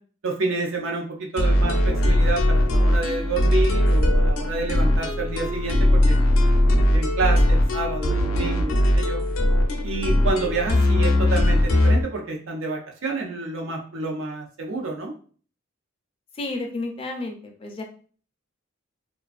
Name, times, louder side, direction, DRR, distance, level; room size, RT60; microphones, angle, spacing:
voice 1, 0.2-6.2 6.7-9.2 9.8-15.1, right 3 dB, 75° right, 1 dB, 0.6 m, -29 dB
sound 1, 1.4-12.0, left 1 dB, 90° left, 0.5 m, -20 dB
voice 2, 16.3-17.8, left 2 dB, 25° left, 3 dB, 0.4 m, -31 dB
2.4 x 2.3 x 2.3 m, 0.43 s
head